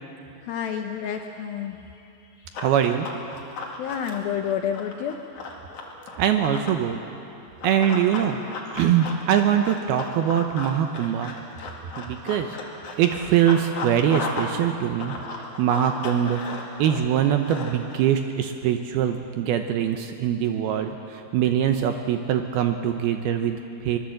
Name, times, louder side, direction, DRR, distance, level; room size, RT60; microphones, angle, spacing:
voice 1, 0.4-1.8 3.7-5.2 5.7-6.1, left 8 dB, 75° left, 5 dB, 2.2 m, -29 dB
Run, 2.5-6.8 7.6-14.6 14.8-18.0, left 3 dB, 50° left, 3.3 m, -35 dB
voice 2, 2.6-3.1 6.2-7.0 7.6-8.4 8.7-11.3 12.0-12.6 13.0-15.2 15.6-16.4 16.8-24.0, right 9 dB, 75° right, 6 dB, 2.5 m, -23 dB
24.0 x 20.5 x 7.8 m, 2.7 s
omnidirectional pair, 5.2 m